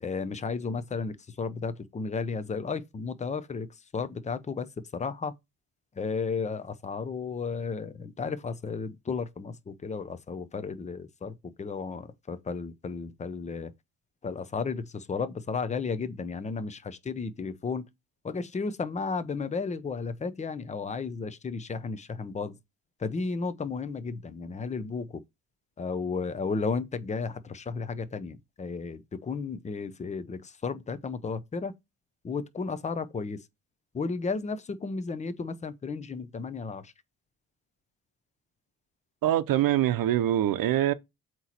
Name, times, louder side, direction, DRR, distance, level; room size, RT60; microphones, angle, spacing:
voice 1, 0.0-3.7 3.9-4.7 4.9-5.3 6.0-13.7 14.2-17.8 18.2-22.6 23.0-25.2 25.8-31.7 32.2-33.4 33.9-36.9, left 4 dB, 20° left, 0.6 m, -33 dB
voice 2, 39.2-40.9, right 12 dB, 70° right, 0.8 m, -24 dB
7.9 x 3.1 x 4.3 m
cardioid pair, 140°, 36 cm